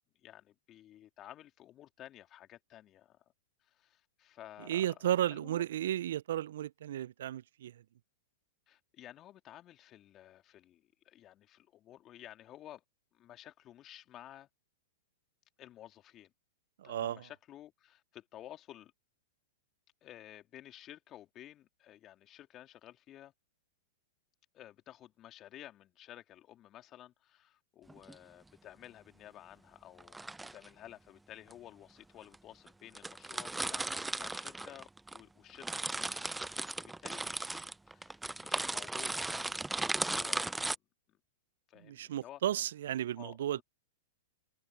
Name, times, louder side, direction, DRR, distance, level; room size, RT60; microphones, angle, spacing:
voice 1, 0.2-3.2 3.7-5.9 8.7-12.8 13.1-14.5 15.6-16.3 16.8-18.9 20.0-23.3 24.5-40.8 41.1-41.2 41.7-42.4 43.2-43.6, left 12 dB, 30° left, 3.2 m, -53 dB
voice 2, 4.7-7.7 16.8-17.2 41.9-43.6, right 11 dB, 65° right, 0.5 m, -34 dB
sound 1, 27.9-28.1 30.0-30.7 31.5-31.6 32.3-32.4 32.7-32.8 32.9-35.2 35.5-40.8, right 2 dB, 5° right, 0.5 m, -37 dB
hypercardioid pair, 105°, 0 cm